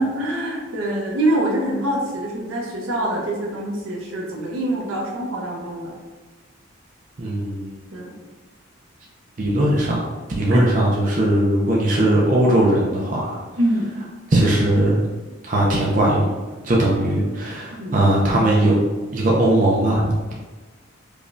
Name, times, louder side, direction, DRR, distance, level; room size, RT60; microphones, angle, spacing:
voice 1, 0.0-5.9 7.9-8.2 10.5-10.6 13.6-13.9 17.8-18.0, right 1 dB, 80° right, -2 dB, 0.8 m, -24 dB
voice 2, 7.2-7.8 9.4-10.0 10.3-13.4 14.3-15.0 15.5-16.4 16.6-18.8 19.1-20.3, right 1 dB, 40° right, -4 dB, 0.5 m, -19 dB
5.0 x 2.3 x 2.5 m, 1.3 s
head